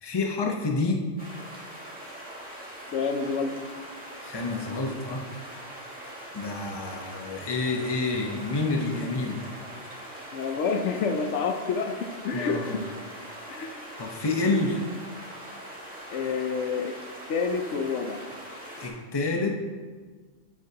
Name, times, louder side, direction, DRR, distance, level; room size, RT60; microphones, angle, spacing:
voice 1, 0.0-1.1 4.2-5.2 6.3-9.5 12.3-12.8 14.0-14.8 18.8-19.5, left 3 dB, 25° left, 2 dB, 0.8 m, -28 dB
sound 1, 1.2-18.9, right 1 dB, 5° right, 2.2 m, -42 dB
voice 2, 2.9-3.5 10.3-11.9 12.2-12.8 13.5-13.8 16.1-16.9 17.3-18.2, left 5 dB, 75° left, 5 dB, 1.0 m, -28 dB
9.9 x 8.7 x 2.8 m, 1.5 s
omnidirectional pair, 1.2 m